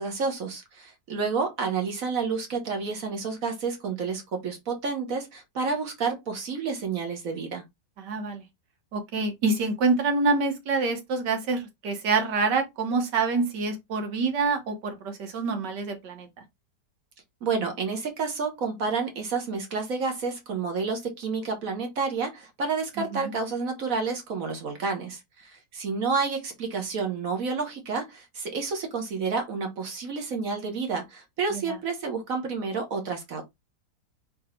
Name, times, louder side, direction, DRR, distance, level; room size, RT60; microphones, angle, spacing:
voice 1, 0.0-7.6 17.4-33.4, right 4 dB, 55° right, 1.5 m, -30 dB
voice 2, 8.0-8.4 8.9-16.3 23.1-23.3 31.5-31.8, right 4 dB, 90° right, 1.8 m, -26 dB
4.2 x 3.4 x 3.1 m
omnidirectional pair, 1.8 m